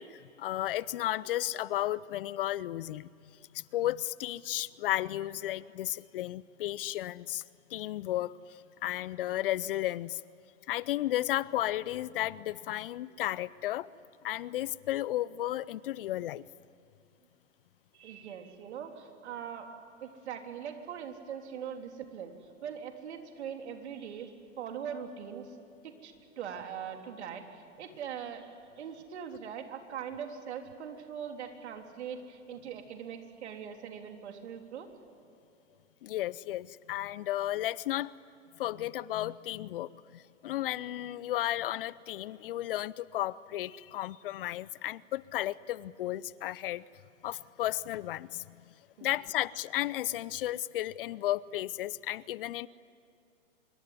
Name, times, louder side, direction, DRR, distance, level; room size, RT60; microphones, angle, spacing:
voice 1, 0.0-3.1 3.5-7.4 7.7-10.2 10.7-13.9 14.2-16.5 36.0-38.1 38.6-46.8 47.2-48.6 49.0-52.7, left 14 dB, 45° left, 21 dB, 0.6 m, -33 dB
voice 2, 17.9-19.7 20.0-22.3 22.6-25.5 25.8-28.5 28.8-34.9 49.0-49.1, right 8 dB, 60° right, 5 dB, 3.6 m, -41 dB
26.0 x 23.5 x 9.8 m, 2.6 s
hypercardioid pair, 115°, 38 cm